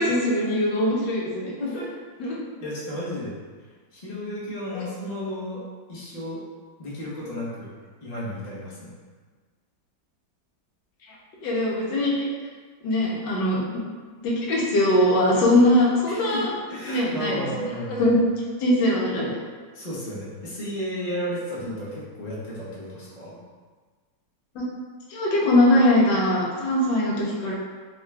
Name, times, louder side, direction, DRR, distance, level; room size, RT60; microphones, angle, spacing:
voice 1, 0.0-1.5 2.2-2.4 4.7-4.8 11.4-12.3 12.8-13.8 14.2-16.4 16.9-17.4 18.0-18.2 18.6-19.3 24.5-24.7 25.1-27.5, left 1 dB, 70° left, -4 dB, 1.3 m, -21 dB
voice 2, 1.6-1.9 2.6-3.3 3.9-5.6 5.9-6.4 6.8-7.7 8.0-8.9 16.1-18.1 18.8-18.9 19.7-23.4, equal, 45° left, -7 dB, 0.5 m, -33 dB
3.7 x 2.3 x 3.2 m, 1.5 s
omnidirectional pair, 2.1 m